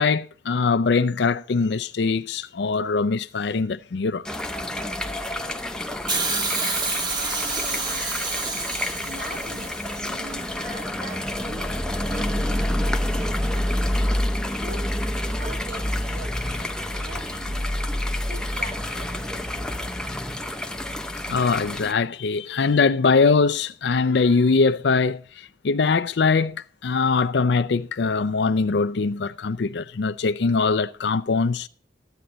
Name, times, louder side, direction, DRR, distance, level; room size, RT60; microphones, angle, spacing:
voice 1, 0.0-4.3 21.3-31.7, left 4 dB, 75° left, 0.5 m, -22 dB
sound 1, 4.3-21.9, left 1 dB, 5° left, 0.7 m, -28 dB
Hiss, 6.1-10.2 11.2-11.3, right 3 dB, 25° right, 1.2 m, -28 dB
voice 2, 6.1-6.5 7.1-8.1 9.0-11.7 12.0-13.7 14.6-15.0 15.3-17.8 18.3-19.7, right 1 dB, 65° right, 2.6 m, -42 dB
13.0 x 9.1 x 3.9 m
head